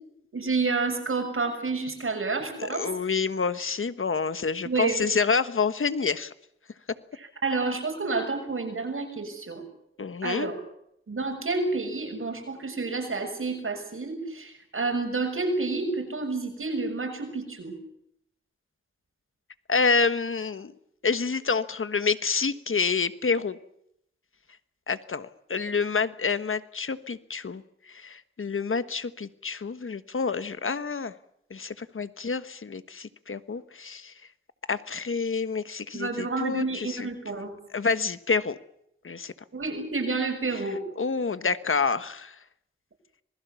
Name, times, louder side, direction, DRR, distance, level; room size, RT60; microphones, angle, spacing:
voice 1, 0.3-2.9 4.6-5.1 7.1-9.6 10.2-10.6 11.1-17.7 35.9-37.5 39.5-40.8, right 3 dB, 80° right, 4 dB, 6.6 m, -29 dB
voice 2, 2.6-6.3 10.0-10.5 19.7-20.7 21.0-23.6 24.9-27.6 27.9-31.1 31.5-34.1 34.7-37.1 37.7-38.5 39.0-39.3 41.0-42.4, left 5 dB, 80° left, 12 dB, 1.3 m, -28 dB
26.5 x 21.0 x 7.1 m, 0.75 s
wide cardioid pair, 80°, 21 cm